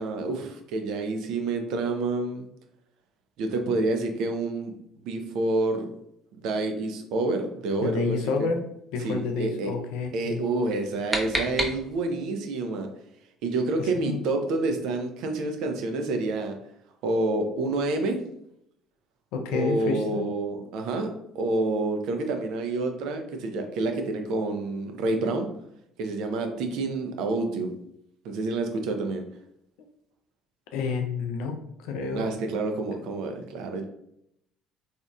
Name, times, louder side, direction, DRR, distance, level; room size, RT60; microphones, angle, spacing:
voice 1, 0.0-2.4 3.4-4.7 5.0-5.9 6.4-8.5 9.0-9.7 10.1-12.9 13.4-16.6 17.0-18.2 19.5-21.1 21.3-25.5 26.0-27.7 28.2-29.2 32.1-33.9, right 2 dB, 60° right, 4 dB, 0.4 m, -28 dB
voice 2, 7.8-8.6 8.9-10.4 13.8-14.2 19.3-20.3 30.7-31.5 31.8-32.2, left 4 dB, 65° left, 4 dB, 0.4 m, -29 dB
sound 1, 10.6-12.3, equal, 10° right, 0.6 m, -31 dB
2.8 x 2.4 x 2.3 m, 0.76 s
figure-of-eight pair, 55°, 0 cm